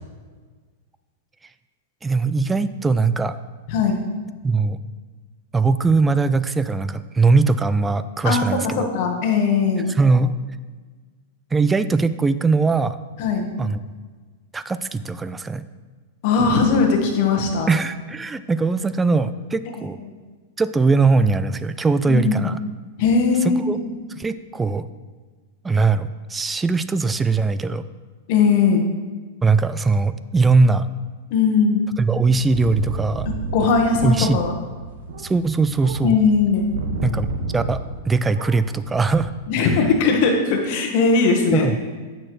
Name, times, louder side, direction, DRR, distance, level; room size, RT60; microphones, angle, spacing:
voice 1, 2.0-3.4 4.4-4.8 5.5-8.9 10.0-10.3 11.5-13.0 13.6-13.8 14.5-15.6 17.7-20.0 20.6-22.6 23.4-23.8 24.2-24.9 25.6-27.9 29.4-30.9 32.0-33.3 34.0-34.4 35.2-36.2 37.0-37.3 37.5-37.8 38.1-39.3 41.5-41.8, right 4 dB, 10° right, 13 dB, 0.3 m, -20 dB
voice 2, 3.7-4.0 8.2-8.5 8.8-9.9 13.2-13.5 16.2-17.7 20.0-20.1 22.1-22.6 23.0-23.6 28.3-28.8 31.3-31.8 33.5-34.6 36.0-36.7 39.5-41.7, left 5 dB, 55° left, 2 dB, 1.4 m, -19 dB
sound 1, 32.1-38.1 38.3-39.2, right 3 dB, 80° right, 1.1 m, -31 dB
8.6 x 6.3 x 3.2 m, 1.4 s
hypercardioid pair, 135°, 0 cm